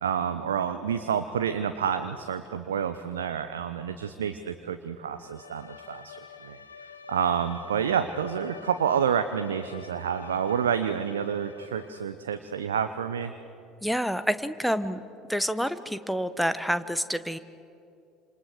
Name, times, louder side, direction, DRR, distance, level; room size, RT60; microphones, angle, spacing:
voice 1, 0.0-6.2 6.4-13.3, right 8 dB, 75° right, 9 dB, 0.9 m, -29 dB
Bowed string instrument, 5.1-12.2, left 5 dB, 80° left, 1.1 m, -47 dB
voice 2, 13.8-15.0 15.3-17.4, equal, ahead, 12 dB, 1.3 m, -28 dB
28.0 x 27.5 x 6.7 m, 2.6 s
figure-of-eight pair, 65°, 0 cm